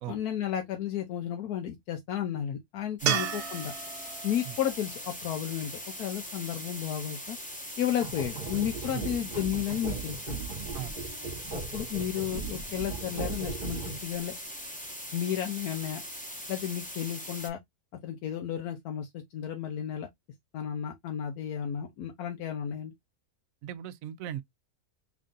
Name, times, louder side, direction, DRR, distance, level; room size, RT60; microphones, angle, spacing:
voice 1, 0.1-3.7 4.2-5.7 6.0-7.4 7.8-10.3 11.7-14.3 15.1-16.0 16.5-17.6 18.0-20.1 20.5-22.9, left 10 dB, 85° left, 1.2 m, -33 dB
sound 1, 3.0-17.5, equal, 5° left, 0.8 m, -41 dB
sound 2, 3.1-6.3 9.6-9.7, right 9 dB, 90° right, 1.2 m, -35 dB
sound 3, 8.0-14.2, right 5 dB, 35° right, 0.9 m, -38 dB
voice 2, 23.6-24.4, right 12 dB, 70° right, 0.9 m, -35 dB
3.6 x 2.6 x 3.6 m
omnidirectional pair, 1.6 m